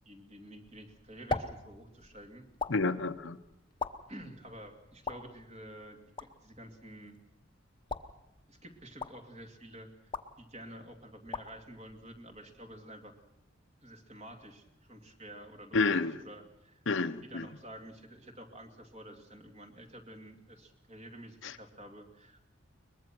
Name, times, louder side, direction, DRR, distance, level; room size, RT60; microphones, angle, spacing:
voice 1, 0.1-2.5 4.1-7.2 8.5-13.1 13.8-16.8 17.2-22.4, right 1 dB, 35° right, 5 dB, 2.5 m, -50 dB
sound 1, 0.6-12.8, left 3 dB, 25° left, 1.0 m, -43 dB
voice 2, 2.7-3.4 15.7-16.2 16.9-17.4 21.4-21.5, left 3 dB, 65° left, 11 dB, 0.8 m, -29 dB
23.0 x 20.5 x 6.1 m, 0.91 s
head